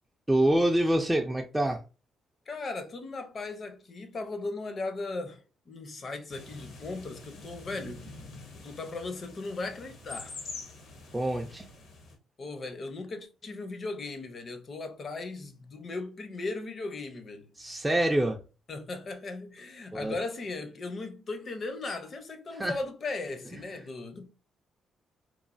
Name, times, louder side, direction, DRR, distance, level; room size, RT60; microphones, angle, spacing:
voice 1, 0.3-1.8 11.1-11.7 17.6-18.4 19.9-20.1 22.5-22.7, right 1 dB, 10° right, 0.3 m, -26 dB
voice 2, 2.5-8.1 8.5-10.4 12.4-17.5 18.7-24.3, left 3 dB, 45° left, 0.6 m, -37 dB
sound 1, 6.3-12.2, left 3 dB, 75° left, 0.8 m, -45 dB
3.0 x 2.1 x 2.4 m
cardioid pair, 90°, 0 cm